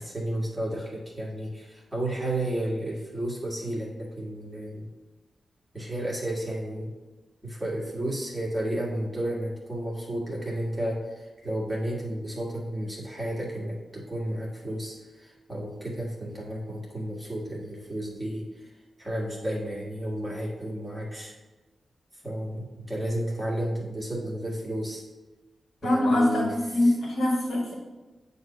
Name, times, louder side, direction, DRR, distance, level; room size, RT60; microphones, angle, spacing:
voice 1, 0.0-4.9 5.7-6.9 7.4-18.7 19.0-21.3 22.1-25.0 25.8-26.5 26.8-26.9, right 1 dB, 15° right, -5 dB, 1.6 m, -32 dB
voice 2, 25.8-27.7, left 1 dB, 70° left, -3 dB, 1.6 m, -23 dB
8.0 x 2.8 x 5.3 m, 1.2 s
wide cardioid pair, 95°, 0 cm